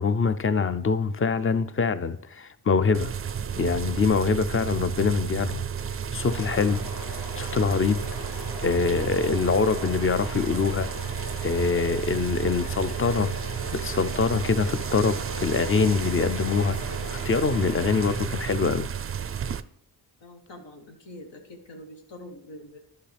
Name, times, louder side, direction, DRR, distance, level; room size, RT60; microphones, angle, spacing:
voice 1, 0.0-3.1 3.6-8.0 8.6-10.9 11.4-13.3 13.7-18.9, left 4 dB, 30° left, 0.5 m, -24 dB
sound 1, 2.9-19.6, right 8 dB, 35° right, 0.4 m, -32 dB
sound 2, 6.2-18.6, equal, 60° left, 2.7 m, -40 dB
voice 2, 20.2-22.8, left 1 dB, 80° left, 1.5 m, -44 dB
11.5 x 5.7 x 3.4 m
cardioid pair, 65°, 44 cm